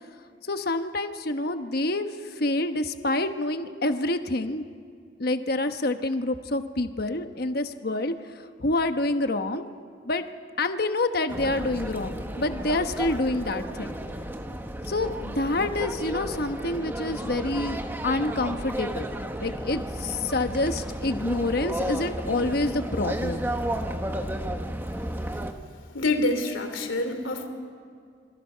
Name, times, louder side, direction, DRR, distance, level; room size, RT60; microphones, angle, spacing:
voice 1, 0.5-2.1 2.4-4.7 5.2-9.7 10.0-10.2 10.6-13.9 14.9-19.1 19.4-23.4, left 2 dB, 55° left, 8 dB, 1.1 m, -27 dB
sound 1, 11.3-25.5, right 1 dB, 10° right, 1.1 m, -33 dB
voice 2, 25.9-27.5, left 2 dB, 85° left, 6 dB, 3.0 m, -26 dB
27.0 x 23.5 x 5.7 m, 2.2 s
head